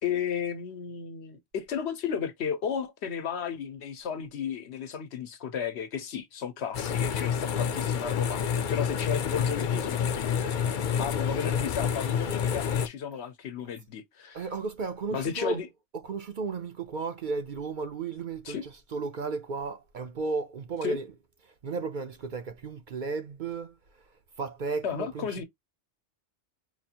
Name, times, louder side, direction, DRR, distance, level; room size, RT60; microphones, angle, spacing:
voice 1, 0.0-10.5 11.0-14.5 15.1-15.7 18.4-18.7 20.8-21.0 24.8-25.4, left 7 dB, 70° left, 1.0 m, -34 dB
sound 1, 6.7-12.9, left 7 dB, 55° left, 0.6 m, -28 dB
voice 2, 14.3-15.6 15.9-21.2 21.6-23.8 24.4-25.4, right 4 dB, 55° right, 0.6 m, -34 dB
4.7 x 2.5 x 2.8 m
omnidirectional pair, 1.2 m